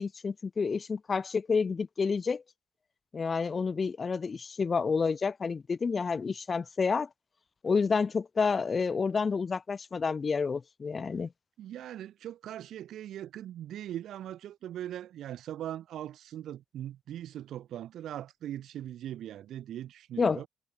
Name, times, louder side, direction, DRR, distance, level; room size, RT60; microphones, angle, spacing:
voice 1, 0.0-2.4 3.1-7.1 7.6-11.3 20.2-20.5, left 5 dB, 35° left, 0.3 m, -29 dB
voice 2, 11.6-20.5, right 11 dB, 75° right, 0.7 m, -40 dB
cardioid pair, 90°, 0 cm